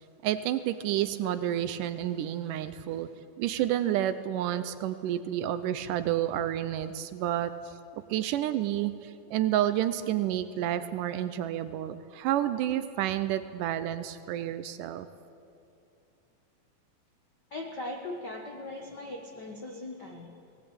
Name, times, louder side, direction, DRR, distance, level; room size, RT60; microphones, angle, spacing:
voice 1, 0.2-3.1 3.4-15.1, right 12 dB, 80° right, 12 dB, 2.1 m, -30 dB
voice 2, 17.5-20.4, left 2 dB, 60° left, 1 dB, 1.0 m, -39 dB
19.5 x 17.5 x 8.8 m, 2.7 s
omnidirectional pair, 4.0 m